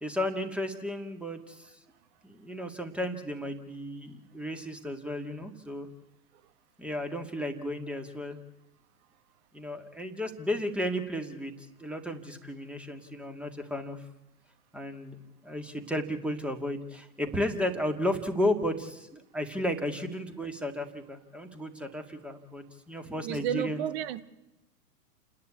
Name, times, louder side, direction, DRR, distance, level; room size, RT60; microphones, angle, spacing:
voice 1, 0.0-1.7 2.2-5.9 6.8-8.4 9.5-11.5 11.8-14.0 14.7-15.2 15.4-23.8, left 1 dB, ahead, 6 dB, 2.0 m, -33 dB
voice 2, 23.2-24.2, right 10 dB, 40° right, 13 dB, 1.4 m, -32 dB
30.0 x 10.5 x 8.4 m, 0.94 s
hypercardioid pair, 115°, 47 cm